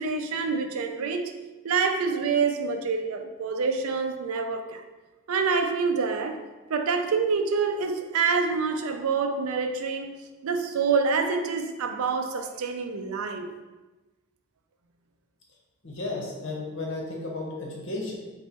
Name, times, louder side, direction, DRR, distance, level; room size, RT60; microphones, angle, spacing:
voice 1, 0.0-1.3 1.6-4.8 5.3-6.4 6.7-10.1 10.4-13.5, right 5 dB, 85° right, 0.4 m, -26 dB
voice 2, 15.8-18.1, left 2 dB, 60° left, 1.0 m, -33 dB
4.0 x 2.2 x 4.4 m
head